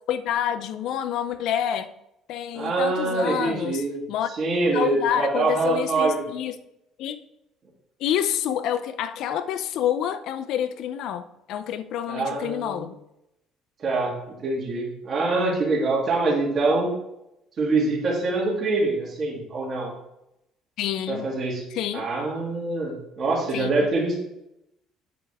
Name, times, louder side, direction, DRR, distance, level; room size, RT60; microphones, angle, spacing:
voice 1, 0.1-1.9 2.3-4.3 4.7-6.6 7.0-7.2 8.0-13.0 20.8-21.3 21.7-22.0 23.5-23.9, left 10 dB, 65° left, 12 dB, 0.6 m, -28 dB
voice 2, 2.5-4.0 4.4-6.2 12.1-12.8 13.8-16.9 17.6-19.9 21.1-21.6 21.9-24.2, right 3 dB, 40° right, -5 dB, 2.8 m, -24 dB
8.6 x 6.4 x 3.6 m, 0.85 s
cardioid pair, 130°, 0 cm